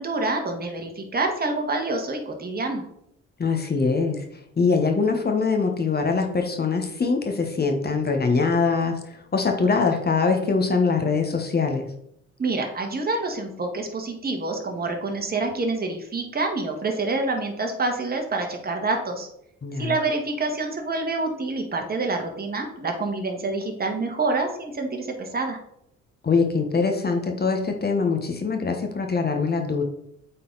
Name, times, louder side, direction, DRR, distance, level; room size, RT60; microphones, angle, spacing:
voice 1, 0.0-2.8 12.4-19.3 19.8-25.6, right 3 dB, 30° right, 3 dB, 1.6 m, -27 dB
voice 2, 3.4-4.2 4.6-11.9 19.6-19.9 26.2-29.8, left 4 dB, 30° left, 5 dB, 1.1 m, -23 dB
8.3 x 4.1 x 3.9 m, 0.74 s
cardioid pair, 90°, 30 cm